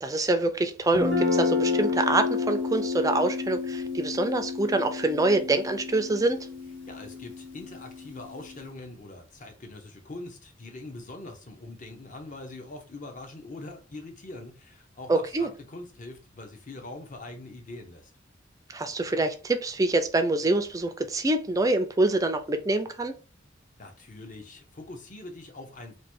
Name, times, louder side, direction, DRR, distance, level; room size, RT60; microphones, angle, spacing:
voice 1, 0.0-6.4 15.1-15.5 18.7-23.1, right 2 dB, 20° right, 0.4 m, -25 dB
Guitar, 0.9-8.6, left 4 dB, 80° left, 1.5 m, -30 dB
voice 2, 6.9-18.1 23.8-26.0, left 2 dB, 45° left, 0.8 m, -43 dB
3.1 x 2.2 x 4.2 m
head